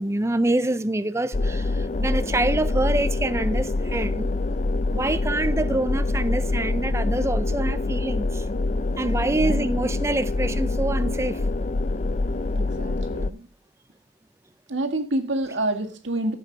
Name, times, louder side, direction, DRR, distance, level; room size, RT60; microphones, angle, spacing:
voice 1, 0.0-4.3 4.9-8.4 9.0-11.4, right 2 dB, 15° right, 0.5 m, -26 dB
sound 1, 1.3-13.3, left 2 dB, 40° left, 0.5 m, -25 dB
voice 2, 9.3-9.8 12.5-13.5 14.7-16.4, right 1 dB, 80° right, 2.0 m, -28 dB
14.5 x 7.9 x 5.2 m
head